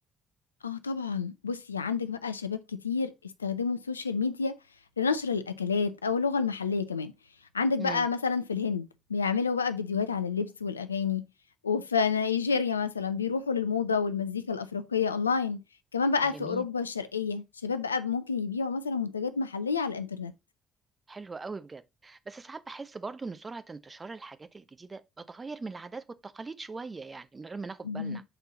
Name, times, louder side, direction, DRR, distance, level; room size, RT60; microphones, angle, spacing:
voice 1, 0.6-3.1 3.4-4.5 5.0-7.1 7.5-11.2 11.6-15.6 15.9-20.3 27.8-28.2, left 5 dB, 85° left, 0.5 m, -29 dB
voice 2, 16.2-16.7 21.1-28.2, right 4 dB, 25° right, 0.7 m, -41 dB
6.9 x 4.5 x 3.8 m
figure-of-eight pair, 45°, 0 cm